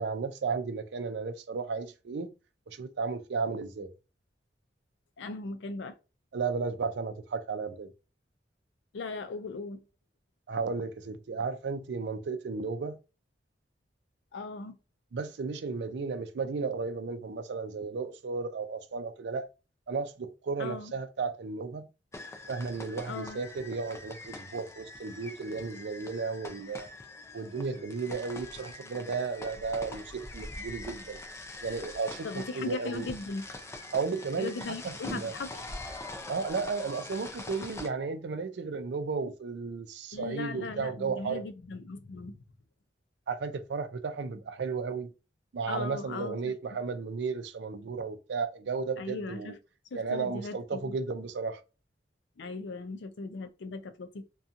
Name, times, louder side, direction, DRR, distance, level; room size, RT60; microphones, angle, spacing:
voice 1, 0.0-2.3 2.7-3.9 6.3-7.9 10.5-13.0 15.1-19.5 19.9-21.9 22.5-26.9 27.3-31.2 31.6-33.1 33.9-34.5 34.8-35.3 36.3-41.4 43.3-45.1 45.5-49.5 49.9-51.6, right 4 dB, 65° right, 0.4 m, -34 dB
voice 2, 5.2-5.9 8.9-9.8 14.3-14.8 20.6-20.9 23.1-23.4 32.2-33.4 34.4-35.6 40.1-42.4 45.7-46.5 49.0-49.6 49.9-50.9 52.4-54.2, left 3 dB, 75° left, 0.4 m, -38 dB
sound 1, 22.1-37.9, left 2 dB, 15° left, 0.4 m, -44 dB
2.7 x 2.3 x 2.5 m
head